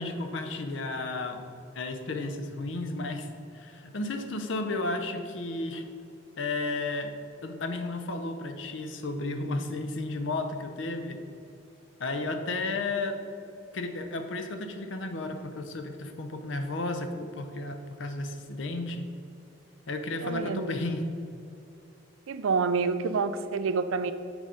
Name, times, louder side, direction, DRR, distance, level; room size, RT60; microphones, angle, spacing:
voice 1, 0.0-1.4 1.7-3.3 3.5-5.9 6.4-7.1 7.4-11.2 12.0-13.2 13.7-19.1 19.9-21.0, left 2 dB, 70° left, 7 dB, 0.7 m, -33 dB
voice 2, 20.2-20.9 22.3-24.1, right 4 dB, 90° right, 11 dB, 0.4 m, -28 dB
6.3 x 5.2 x 4.9 m, 2.6 s
head